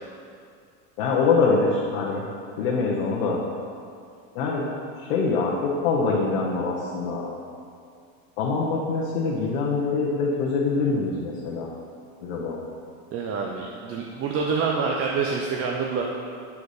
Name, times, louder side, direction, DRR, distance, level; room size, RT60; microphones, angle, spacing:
voice 1, 1.0-2.2 2.6-3.4 4.3-4.6 5.0-7.2 8.4-11.7 12.2-12.6, left 4 dB, 80° left, -4 dB, 1.0 m, -24 dB
voice 2, 13.1-16.0, right 5 dB, 35° right, -1 dB, 0.6 m, -26 dB
7.2 x 4.1 x 4.9 m, 2.4 s
supercardioid pair, 115°, 40 cm